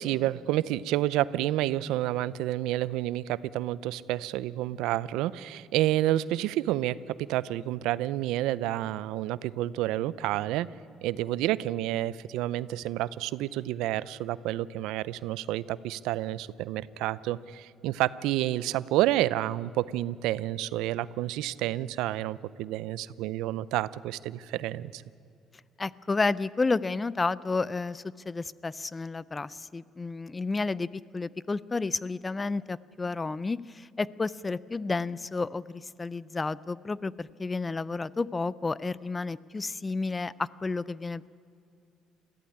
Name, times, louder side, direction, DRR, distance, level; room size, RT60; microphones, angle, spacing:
voice 1, 0.0-10.7 11.0-25.0, right 14 dB, 90° right, 19 dB, 0.5 m, -29 dB
voice 2, 25.8-30.9 31.1-41.3, left 3 dB, 20° left, 20 dB, 0.4 m, -31 dB
21.5 x 15.0 x 9.8 m, 2.6 s
cardioid pair, 115°, 0 cm